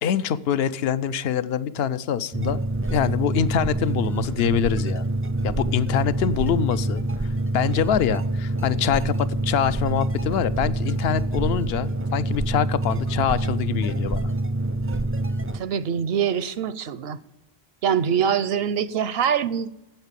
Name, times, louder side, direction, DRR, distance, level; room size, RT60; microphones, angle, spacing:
voice 1, 0.0-2.6 2.9-5.1 5.4-14.3, left 8 dB, 75° left, 15 dB, 0.8 m, -25 dB
sound 1, 2.3-15.6, right 2 dB, 20° right, 0.4 m, -26 dB
voice 2, 15.5-17.2 17.8-19.7, right 8 dB, 75° right, 16 dB, 0.8 m, -24 dB
9.0 x 8.1 x 7.4 m, 0.91 s
omnidirectional pair, 1.0 m